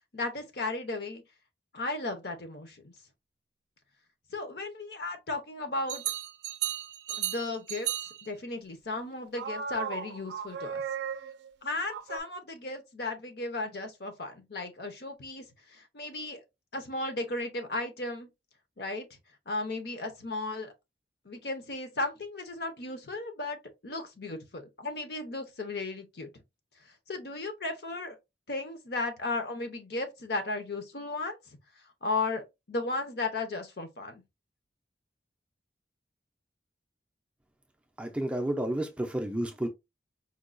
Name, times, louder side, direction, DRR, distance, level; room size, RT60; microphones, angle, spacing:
voice 1, 0.1-1.2 1.7-2.9 4.3-6.0 7.1-7.9 8.2-10.8 11.6-16.4 16.7-18.3 18.8-19.1 19.5-20.7 21.2-26.3 26.8-28.2 28.5-31.4 32.0-34.2, left 2 dB, 60° left, 0.8 m, -35 dB
sound 1, 5.9-8.3 9.4-11.5 11.9-12.2, right 9 dB, 70° right, 0.4 m, -35 dB
voice 2, 38.0-39.7, right 1 dB, 5° right, 0.4 m, -31 dB
4.5 x 2.3 x 2.5 m
head